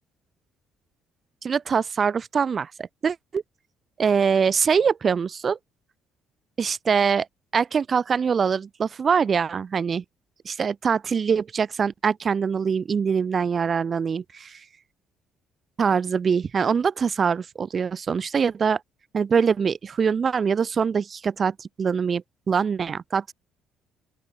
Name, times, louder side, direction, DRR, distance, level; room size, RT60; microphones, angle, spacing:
voice 1, 1.4-3.4 4.0-5.6 6.6-7.3 7.5-10.0 10.5-14.6 15.8-18.8 19.1-23.3, right 6 dB, 40° right, 3.8 m, -23 dB
open air
hypercardioid pair, 50°, 0 cm